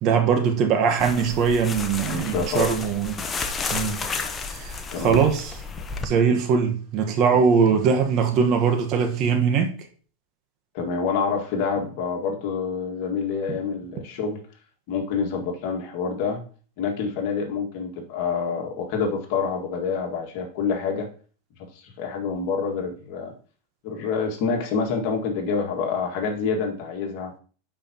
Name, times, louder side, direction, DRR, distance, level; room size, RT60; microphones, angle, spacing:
voice 1, 0.0-3.2 3.7-4.1 4.5-5.5 6.0-9.7 13.5-13.6, right 6 dB, 45° right, 1.2 m, -21 dB
sound 1, 1.0-6.0, left 4 dB, 20° left, 0.8 m, -32 dB
voice 2, 2.0-2.7 4.9-5.2 7.3-7.4 10.7-14.4 14.9-16.4 16.8-21.1 21.7-23.3 23.8-27.3, left 5 dB, 55° left, 1.8 m, -27 dB
10.5 x 4.8 x 2.9 m
supercardioid pair, 125°, 0 cm